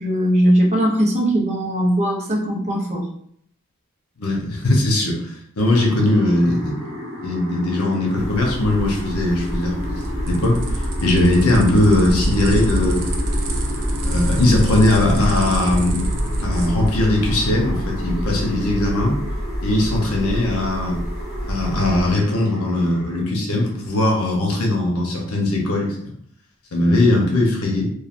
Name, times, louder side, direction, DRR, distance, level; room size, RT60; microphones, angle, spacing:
voice 1, 0.0-3.0, equal, 30° right, -2 dB, 0.6 m, -19 dB
voice 2, 4.2-10.6 11.0-13.0 14.0-16.1 16.4-19.2 19.6-21.0 21.4-26.0 26.7-27.8, left 1 dB, 80° left, -1 dB, 0.8 m, -19 dB
sound 1, 5.6-23.2, left 1 dB, 50° left, 1.2 m, -34 dB
sound 2, 8.1-22.1, equal, 5° right, 1.1 m, -28 dB
sound 3, 9.4-17.0, right 1 dB, 90° right, 0.5 m, -25 dB
3.2 x 2.3 x 2.4 m, 0.67 s
head